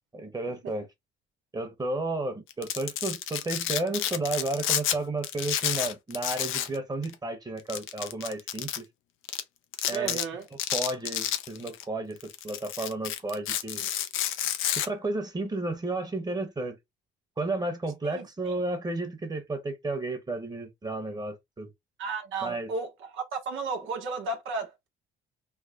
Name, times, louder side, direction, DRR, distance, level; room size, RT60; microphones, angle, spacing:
voice 1, 0.1-0.9 1.5-8.8 9.9-10.2 10.5-12.2 12.4-13.9 14.8-16.8 17.4-21.7 22.4-22.7, right 2 dB, 20° right, 1.1 m, -32 dB
Domestic sounds home sounds, 2.5-5.0 5.2-6.8 7.0-7.1 7.7-8.8 9.3-9.4 9.7-10.2 10.6-11.8 12.2-14.9, left 11 dB, 85° left, 0.6 m, -30 dB
voice 2, 9.9-10.4 18.0-18.6 22.0-24.9, right 4 dB, 80° right, 1.0 m, -34 dB
3.4 x 2.1 x 3.7 m
cardioid pair, 90°, 20 cm